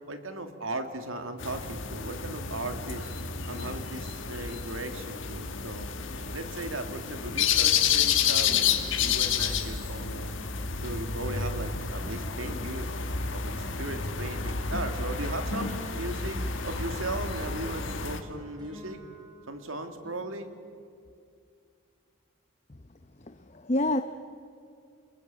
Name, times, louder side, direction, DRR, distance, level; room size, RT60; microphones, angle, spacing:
voice 1, 0.1-3.1 3.5-5.9 6.3-10.4 10.8-13.0 13.3-19.0 19.5-20.5, right 2 dB, 90° right, 7 dB, 2.3 m, -37 dB
sound 1, 1.4-18.2, left 6 dB, 75° left, 1.7 m, -30 dB
sound 2, 7.4-20.8, equal, 20° right, 5.4 m, -52 dB
voice 2, 23.3-24.0, left 1 dB, 35° left, 7 dB, 0.7 m, -27 dB
29.5 x 22.0 x 7.6 m, 2.4 s
head